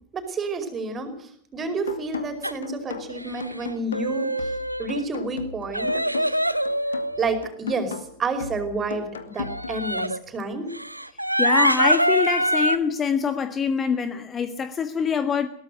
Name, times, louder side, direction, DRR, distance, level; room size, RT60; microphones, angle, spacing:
voice 1, 0.1-4.5 4.8-6.0 7.2-9.1 9.3-10.7, right 3 dB, 20° right, 4.9 m, -29 dB
sound 1, 1.9-9.9, left 5 dB, 70° left, 1.9 m, -37 dB
sound 2, 2.4-2.6 3.1-3.6 3.9-5.0 5.7-7.5 9.4-10.2 10.7-12.8, right 1 dB, 90° right, 0.9 m, -24 dB
voice 2, 11.4-15.5, left 6 dB, 20° left, 1.5 m, -25 dB
21.5 x 18.5 x 6.6 m
figure-of-eight pair, 90°, 0 cm